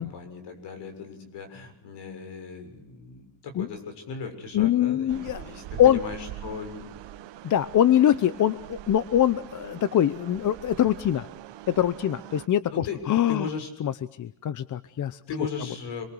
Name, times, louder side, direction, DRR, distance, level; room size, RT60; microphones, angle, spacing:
voice 1, 0.0-6.9 12.7-13.0 13.3-13.7 15.3-16.0, left 5 dB, 75° left, 7 dB, 6.8 m, -37 dB
voice 2, 4.5-5.4 5.8-6.0 7.4-11.3 11.7-13.5 13.8-15.2, left 11 dB, 45° left, 15 dB, 0.8 m, -23 dB
sound 1, 5.1-12.5, right 12 dB, 85° right, 1.4 m, -43 dB
27.5 x 23.5 x 6.3 m, 0.75 s
cardioid pair, 160°, 42 cm